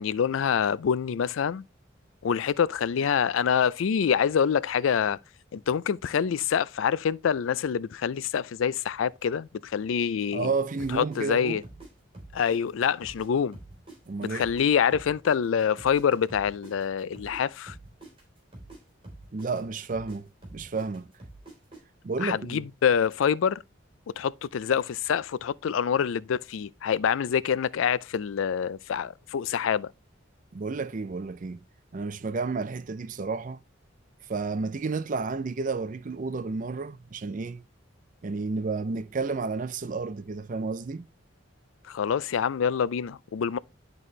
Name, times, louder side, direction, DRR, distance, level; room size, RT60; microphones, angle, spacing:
voice 1, 0.0-1.6 2.2-5.2 5.5-10.5 10.9-11.6 12.3-13.6 14.3-17.8 22.2-23.6 24.2-29.9 41.9-43.6, left 7 dB, 85° left, 0.4 m, -26 dB
voice 2, 10.3-11.6 14.1-14.5 19.3-21.1 22.0-22.6 30.5-31.6 31.9-33.6 34.3-37.6 38.2-41.1, right 4 dB, 40° right, 0.4 m, -31 dB
sound 1, 10.8-13.3 13.5-17.4 17.7-21.8, right 2 dB, 25° right, 3.4 m, -46 dB
11.0 x 4.1 x 3.1 m
head